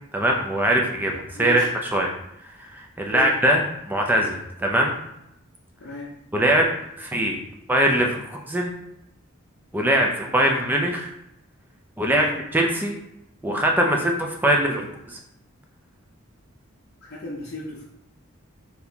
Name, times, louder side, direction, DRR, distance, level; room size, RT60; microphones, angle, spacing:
voice 1, 0.1-2.1 2.6-5.0 6.3-7.4 7.7-8.8 9.7-11.1 12.0-12.3 12.5-13.0 13.4-15.2, right 1 dB, 10° right, 0 dB, 0.5 m, -22 dB
voice 2, 1.3-1.7 3.1-3.3 5.8-6.1 10.3-10.5 12.0-12.4 17.1-17.9, left 1 dB, 50° left, -6 dB, 0.6 m, -35 dB
4.0 x 2.9 x 3.4 m, 0.82 s
head